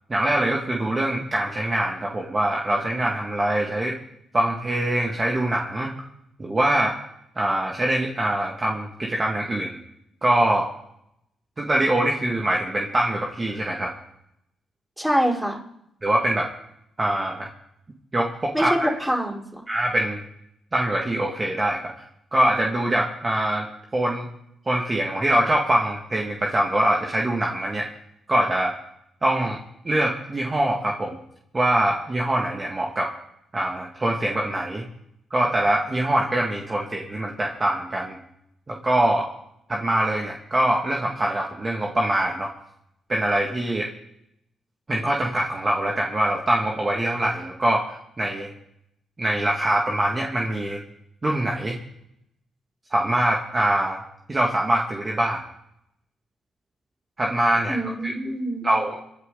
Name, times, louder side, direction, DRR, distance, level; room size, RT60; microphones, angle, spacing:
voice 1, 0.1-4.0 4.3-5.9 6.4-6.9 7.4-9.8 10.2-10.7 11.6-14.0 16.0-16.5 17.0-17.5 18.1-18.9 19.7-20.2 20.7-21.9 22.3-23.7 23.9-24.3 24.7-27.9 28.3-28.7 29.2-29.6 29.8-31.2 31.5-33.1 33.5-34.8 35.3-38.2 38.7-39.3 39.7-42.5 43.1-43.9 44.9-47.8 48.2-48.5 49.2-50.8 51.2-51.8 52.9-54.0 54.3-55.4 57.2-58.1 58.6-59.0, right 1 dB, 30° right, -1 dB, 2.1 m, -23 dB
voice 2, 15.0-15.6 18.5-19.6 57.7-58.7, equal, ahead, -2 dB, 4.7 m, -25 dB
26.0 x 10.0 x 4.0 m, 0.78 s
supercardioid pair, 60°, 0 cm